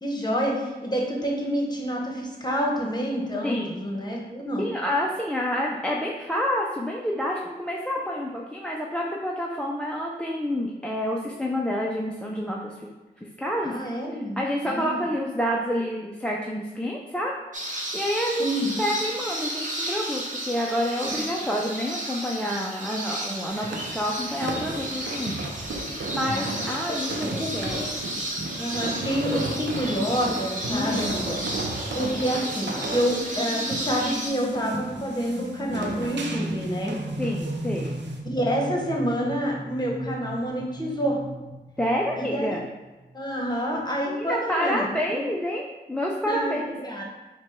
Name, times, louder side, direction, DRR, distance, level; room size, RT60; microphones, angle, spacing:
voice 1, 0.0-4.6 13.6-14.4 14.6-15.0 18.4-18.8 21.1-21.2 26.3-26.5 26.9-27.0 27.4-27.9 28.6-31.4 31.9-36.9 38.3-41.2 42.2-42.6 43.1-45.3 46.2-47.0, equal, 25° left, -2 dB, 1.1 m, -28 dB
voice 2, 3.4-3.8 4.6-12.7 13.2-13.7 14.4-17.3 17.9-18.5 18.8-23.7 23.9-25.5 25.9-27.8 30.7-31.0 37.2-37.9 41.8-42.6 44.1-46.7, equal, 5° left, -2 dB, 0.5 m, -28 dB
sound 1, 17.5-34.3, right 1 dB, 45° right, 1.0 m, -33 dB
sound 2, 23.5-38.2, right 2 dB, 80° right, 0.6 m, -35 dB
sound 3, 33.2-43.5, right 1 dB, 20° right, 0.7 m, -36 dB
4.5 x 2.2 x 4.3 m, 1.2 s
cardioid pair, 45°, 18 cm